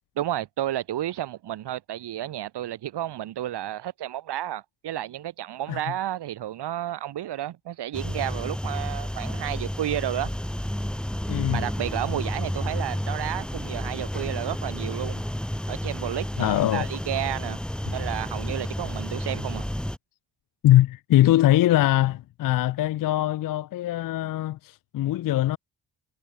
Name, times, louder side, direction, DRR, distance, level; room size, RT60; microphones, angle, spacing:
voice 1, 0.2-10.3 11.5-15.2 15.7-17.6 17.9-19.7, right 12 dB, 80° right, 1.6 m, -31 dB
sound 1, 7.9-20.0, equal, ahead, 1.2 m, -31 dB
voice 2, 11.3-11.7 16.4-16.9 20.6-25.6, left 14 dB, 55° left, 0.5 m, -22 dB
cardioid pair, 75°, 40 cm